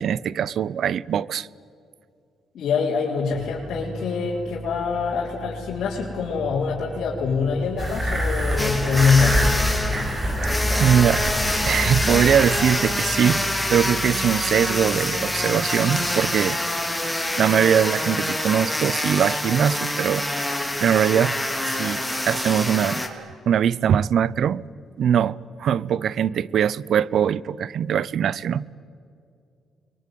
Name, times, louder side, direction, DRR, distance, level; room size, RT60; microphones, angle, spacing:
voice 1, 0.0-1.5 10.8-11.2 11.6-16.6 17.4-20.5 20.8-21.4 21.7-24.6 25.0-28.7, right 9 dB, 65° right, 0.7 m, -22 dB
voice 2, 2.5-9.6, left 5 dB, 65° left, 4.5 m, -24 dB
sound 1, 3.3-16.4, equal, 50° right, 6.3 m, -38 dB
sound 2, 7.8-12.8, equal, 25° right, 5.0 m, -25 dB
sound 3, 8.6-23.1, left 1 dB, 5° left, 3.3 m, -26 dB
28.0 x 22.5 x 9.4 m
cardioid pair, 90°, 0 cm